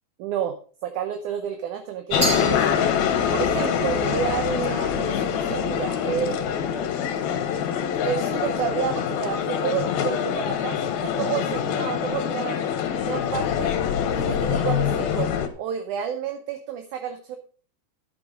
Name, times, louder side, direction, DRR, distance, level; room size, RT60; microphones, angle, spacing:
voice 1, 0.2-0.5 0.8-2.8 3.3-6.9 8.0-12.8 13.1-13.7 14.1-15.3 15.6-17.4, right 9 dB, 70° right, 6 dB, 2.1 m, -30 dB
sound 1, 2.1-15.5, left 8 dB, 85° left, 3.1 m, -25 dB
Glass, 2.2-3.4, right 2 dB, 20° right, 3.9 m, -30 dB
11.0 x 8.0 x 5.1 m, 0.41 s
omnidirectional pair, 4.1 m